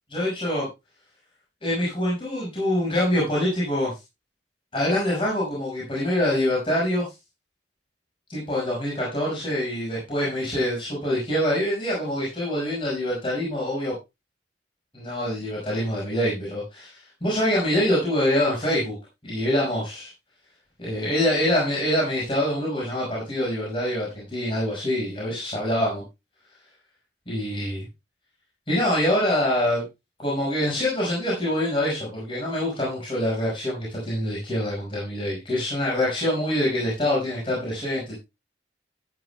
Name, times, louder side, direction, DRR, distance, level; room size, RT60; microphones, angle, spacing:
voice 1, 0.1-0.7 1.6-3.9 4.7-7.0 8.3-13.9 14.9-19.0 19.2-20.1 20.8-26.0 27.3-27.9 28.7-29.8 30.2-38.2, left 1 dB, 30° left, -5 dB, 5.5 m, -25 dB
14.0 x 11.0 x 2.3 m, 0.24 s
head